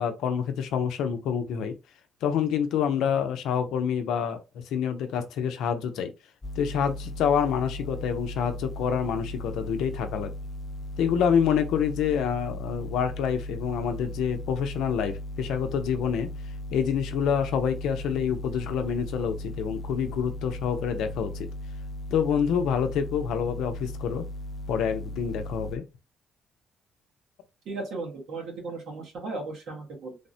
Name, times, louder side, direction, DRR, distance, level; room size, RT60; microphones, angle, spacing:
voice 1, 0.0-1.8 2.2-6.1 6.6-10.3 11.0-16.3 16.7-21.5 22.1-24.3 24.7-25.9, left 7 dB, 85° left, 0.5 m, -27 dB
sound 1, 6.4-25.8, left 1 dB, 20° left, 0.4 m, -37 dB
voice 2, 27.6-30.2, right 3 dB, 80° right, 1.3 m, -36 dB
3.3 x 2.1 x 2.6 m
cardioid pair, 90°, 0 cm